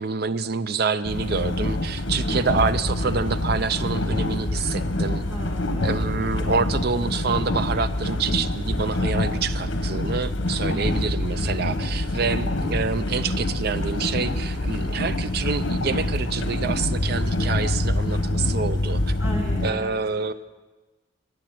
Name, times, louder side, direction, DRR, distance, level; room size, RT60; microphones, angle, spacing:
voice 1, 0.0-5.2 5.8-19.2 19.6-20.3, right 5 dB, 55° right, 13 dB, 0.5 m, -27 dB
sound 1, 1.1-19.7, left 1 dB, 85° left, 1.1 m, -26 dB
voice 2, 2.2-2.5 5.2-6.2 10.7-11.1 19.2-19.9, equal, 15° right, -3 dB, 2.6 m, -36 dB
14.0 x 9.0 x 5.9 m, 1.2 s
head